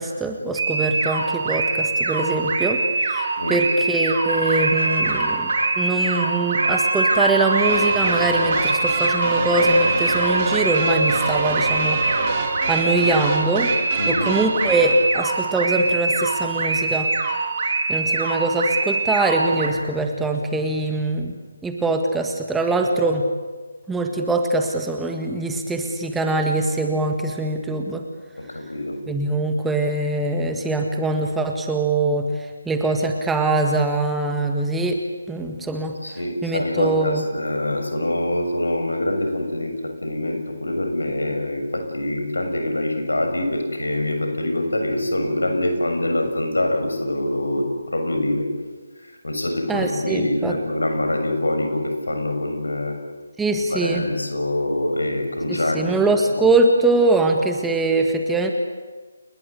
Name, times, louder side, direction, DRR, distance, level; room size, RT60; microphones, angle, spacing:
voice 1, 0.0-5.5 5.8-12.0 12.7-13.7 14.1-17.1 17.9-21.3 21.6-23.3 23.9-28.0 29.1-35.0 35.3-35.9 36.4-37.2 49.7-50.6 53.4-54.1 55.5-58.5, right 2 dB, 5° right, 3 dB, 1.8 m, -22 dB
sound 1, 0.6-19.7, right 3 dB, 45° right, 5.0 m, -24 dB
sound 2, 4.3-5.7 6.1-6.2 6.6-7.8 8.1-13.3, right 1 dB, 80° right, 7.0 m, -25 dB
sound 3, 7.6-15.0, right 4 dB, 30° right, 4.6 m, -29 dB
voice 2, 14.0-14.3 28.5-29.0 36.0-39.7 40.0-48.5 49.2-53.0 53.7-56.0, left 1 dB, 75° left, 5 dB, 6.8 m, -24 dB
29.5 x 20.5 x 8.3 m, 1.3 s
figure-of-eight pair, 150°, 0 cm